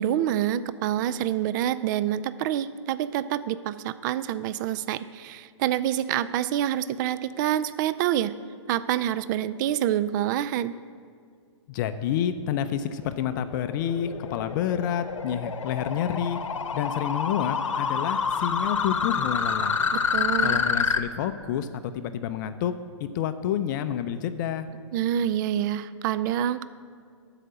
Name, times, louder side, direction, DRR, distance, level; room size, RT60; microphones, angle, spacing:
voice 1, 0.0-8.3 8.7-10.7 20.1-20.6 24.9-26.6, right 11 dB, 40° right, 14 dB, 0.4 m, -27 dB
voice 2, 11.7-16.4 16.7-19.8 20.4-22.7 23.1-24.7, left 9 dB, 40° left, 10 dB, 0.5 m, -29 dB
sound 1, 12.9-21.0, left 6 dB, 80° left, 0.8 m, -28 dB
12.5 x 4.9 x 7.7 m, 2.1 s
hypercardioid pair, 125°, 16 cm